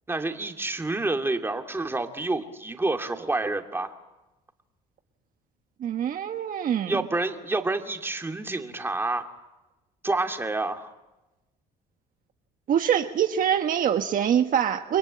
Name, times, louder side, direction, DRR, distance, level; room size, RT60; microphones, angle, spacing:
voice 1, 0.1-4.0 6.9-9.3 10.0-10.9, right 2 dB, 15° right, 4 dB, 2.6 m, -28 dB
voice 2, 5.8-7.0 12.7-15.0, right 9 dB, 55° right, 6 dB, 1.4 m, -24 dB
30.0 x 22.5 x 8.7 m, 1.0 s
cardioid pair, 110°, 17 cm